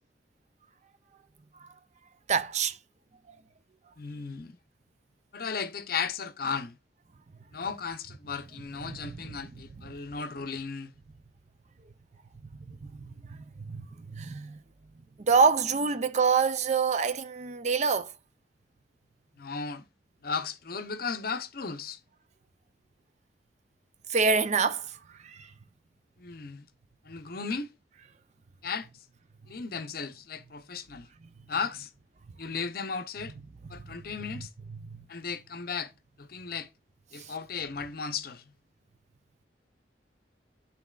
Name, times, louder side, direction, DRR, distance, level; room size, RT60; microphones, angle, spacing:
voice 1, 2.3-2.7 8.8-9.0 12.7-12.8 13.3-13.4 13.7-13.9 14.1-14.6 15.3-18.1 24.1-24.9 25.3-25.4 34.9-35.0, right 5 dB, 40° right, 0.4 m, -25 dB
voice 2, 4.0-4.6 5.3-6.8 7.5-10.9 19.4-19.9 20.2-22.0 26.2-26.6 27.0-27.7 28.6-28.9 29.5-31.1 31.5-31.9 32.4-33.3 33.7-34.5 35.1-35.9 36.2-36.7 37.1-38.5, left 5 dB, 55° left, 0.7 m, -35 dB
11.5 x 4.0 x 2.4 m
head